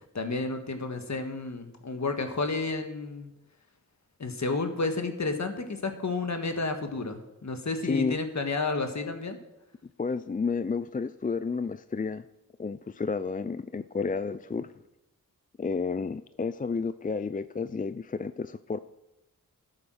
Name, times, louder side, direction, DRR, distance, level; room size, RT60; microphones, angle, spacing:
voice 1, 0.1-3.3 4.2-9.4, left 3 dB, 55° left, 6 dB, 1.7 m, -31 dB
voice 2, 7.8-8.2 10.0-12.2 12.6-14.7 15.6-18.8, left 4 dB, 25° left, 13 dB, 0.4 m, -31 dB
12.5 x 8.7 x 6.4 m, 0.96 s
wide cardioid pair, 65°, 34 cm